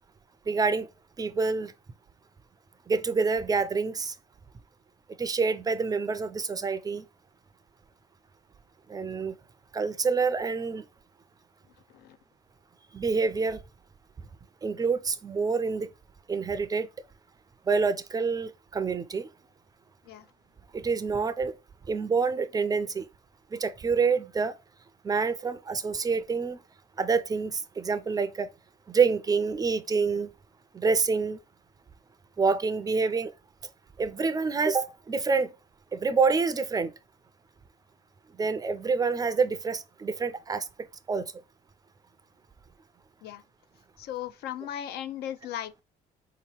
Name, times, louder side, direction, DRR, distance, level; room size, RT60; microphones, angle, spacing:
voice 1, 0.5-0.9 1.2-1.7 2.9-4.2 5.2-7.0 8.9-9.4 9.7-10.8 12.9-13.6 14.6-15.9 16.3-16.9 17.7-19.3 20.7-21.6 21.9-23.1 23.5-24.5 25.0-26.6 27.0-28.5 28.9-30.3 30.7-31.4 32.4-33.3 34.0-35.5 35.9-36.9 38.4-40.7 41.1-41.3, right 4 dB, 20° right, 0.3 m, -27 dB
voice 2, 44.0-45.8, left 11 dB, 70° left, 0.4 m, -37 dB
3.8 x 2.9 x 2.9 m
cardioid pair, 110°, 17 cm